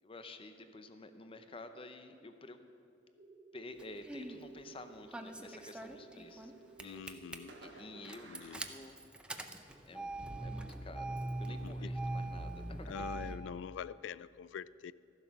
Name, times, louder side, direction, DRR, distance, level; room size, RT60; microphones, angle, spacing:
voice 1, 0.0-2.6 3.5-6.5 6.8-7.3 7.6-9.1 9.9-13.3, left 2 dB, 30° left, 8 dB, 0.7 m, -51 dB
sound 1, 3.2-8.1, right 6 dB, 50° right, 0.8 m, -56 dB
Engine starting, 3.8-4.4 5.1-6.5 6.8-7.4 8.0-13.4, right 1 dB, 5° right, 0.5 m, -41 dB
Fireworks, 5.9-6.9 7.5-9.7, right 2 dB, 85° right, 1.2 m, -58 dB
voice 2, 6.8-7.6 8.3-8.6 11.5-11.9 12.9-14.9, left 7 dB, 85° left, 19 dB, 0.3 m, -45 dB
14.0 x 7.7 x 5.9 m, 2.5 s
head